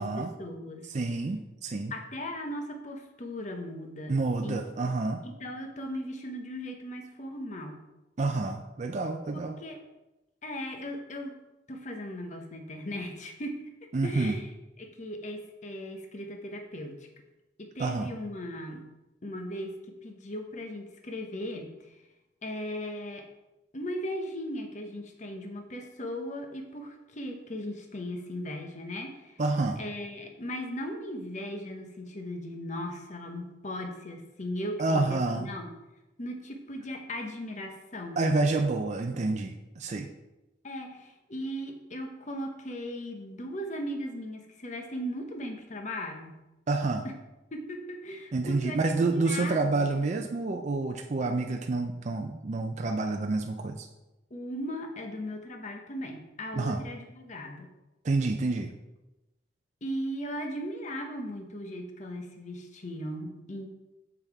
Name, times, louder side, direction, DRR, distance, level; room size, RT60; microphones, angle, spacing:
voice 1, 0.0-0.9 1.9-4.2 4.4-4.6 5.2-7.8 9.3-9.8 10.4-11.4 11.7-14.5 14.8-17.1 17.6-18.8 19.2-22.0 22.4-23.3 23.7-29.4 29.8-35.7 36.2-38.2 40.6-46.4 47.0-47.1 47.5-49.8 54.3-57.7 59.8-63.7, equal, 40° left, 4 dB, 0.9 m, -38 dB
voice 2, 0.9-1.9 4.1-5.2 8.2-9.5 13.9-14.4 17.8-18.1 29.4-29.8 34.8-35.5 38.2-40.1 46.7-47.0 48.3-53.9 56.5-56.8 58.0-58.7, right 3 dB, 35° right, 3 dB, 0.4 m, -28 dB
7.0 x 5.5 x 4.6 m, 0.99 s
head